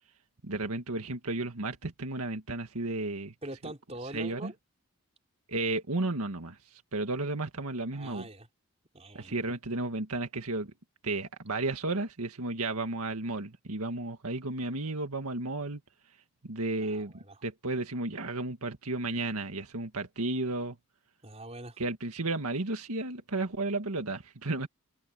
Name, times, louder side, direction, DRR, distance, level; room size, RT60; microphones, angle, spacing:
voice 1, 0.4-3.3 4.1-4.5 5.5-8.3 9.1-10.7 11.0-15.8 16.4-17.1 17.4-20.8 21.8-24.7, right 2 dB, 90° right, 1.9 m, -33 dB
voice 2, 3.4-4.5 7.9-8.5 8.9-9.4 16.8-17.4 21.2-21.8, right 1 dB, 30° right, 5.4 m, -43 dB
head